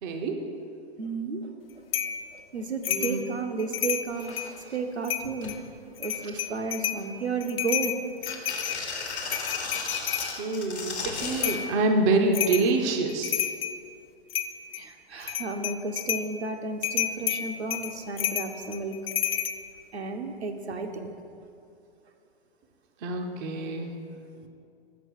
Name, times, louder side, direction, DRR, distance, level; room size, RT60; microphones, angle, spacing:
voice 1, 0.0-0.4 2.9-3.3 10.4-13.3 23.0-23.9, right 3 dB, 20° right, 4 dB, 0.3 m, -26 dB
voice 2, 1.0-1.8 2.3-4.3 4.7-5.6 6.0-8.0 14.7-19.0 19.9-21.1, right 4 dB, 85° right, 5 dB, 0.8 m, -33 dB
sound 1, 1.9-2.2 2.8-3.2 3.6-4.5 5.0-5.6 6.0-7.0 7.4-10.3 11.4-11.7 12.3-12.7 13.1-13.8 14.3-14.8 15.2-16.3 16.8-19.6, left 10 dB, 60° left, 0.6 m, -30 dB
sound 2, 3.8-3.9 4.1-4.8 5.2-5.6 6.0-6.5 7.0-7.8 8.2-11.6 12.7-12.8, left 4 dB, 85° left, 1.1 m, -36 dB
6.1 x 4.5 x 6.3 m, 2.5 s
figure-of-eight pair, 115°, 32 cm